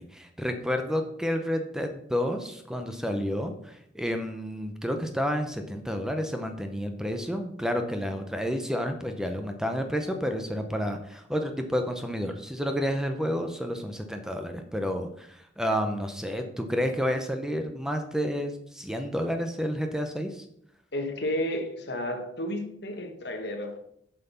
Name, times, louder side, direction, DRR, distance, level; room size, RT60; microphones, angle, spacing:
voice 1, 0.0-20.4, equal, 5° right, 6 dB, 0.7 m, -30 dB
voice 2, 20.9-23.8, left 1 dB, 60° left, 5 dB, 1.4 m, -32 dB
7.7 x 5.7 x 5.7 m, 0.70 s
head